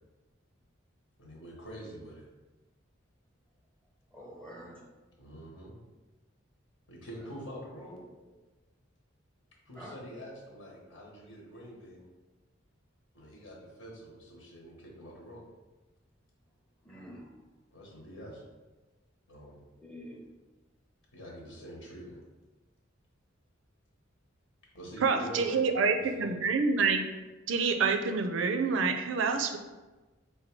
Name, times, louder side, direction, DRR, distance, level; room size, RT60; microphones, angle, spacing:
voice 1, 1.2-2.2 5.2-5.8 6.9-8.0 9.7-12.0 13.1-15.4 17.7-18.4 19.3-19.5 21.1-22.2 24.7-26.4, equal, 70° left, -3 dB, 1.1 m, -46 dB
voice 2, 4.1-4.9 7.2-7.4 8.3-8.4 9.7-10.0 16.8-17.4 19.8-20.3, equal, 5° left, -1 dB, 0.5 m, -48 dB
voice 3, 25.0-27.0 27.5-29.6, right 4 dB, 70° right, 7 dB, 0.4 m, -27 dB
4.4 x 2.2 x 4.4 m, 1.2 s
head